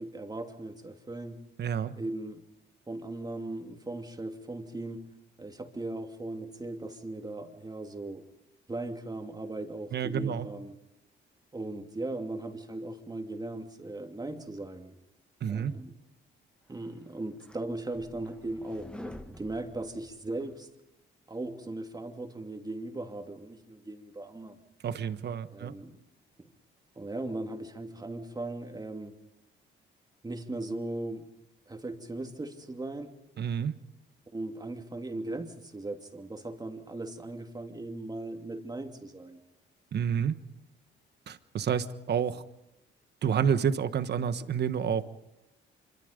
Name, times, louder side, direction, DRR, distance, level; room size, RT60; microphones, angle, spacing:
voice 1, 0.0-1.4 2.0-2.4 2.9-5.1 5.4-8.2 8.7-10.8 11.5-15.0 15.5-15.9 16.7-20.7 21.3-24.6 25.5-26.0 26.4-26.5 27.0-29.2 30.2-31.3 31.7-33.2 34.3-39.4, right 2 dB, 20° right, 4 dB, 2.7 m, -38 dB
voice 2, 1.6-1.9 9.9-10.5 15.4-15.7 24.8-25.7 33.4-33.8 39.9-40.4 41.3-42.4 43.2-45.0, right 7 dB, 55° right, 12 dB, 1.3 m, -29 dB
sound 1, 16.9-20.6, left 1 dB, 5° left, 1.4 m, -48 dB
26.0 x 24.5 x 5.2 m, 0.92 s
cardioid pair, 90°, 20 cm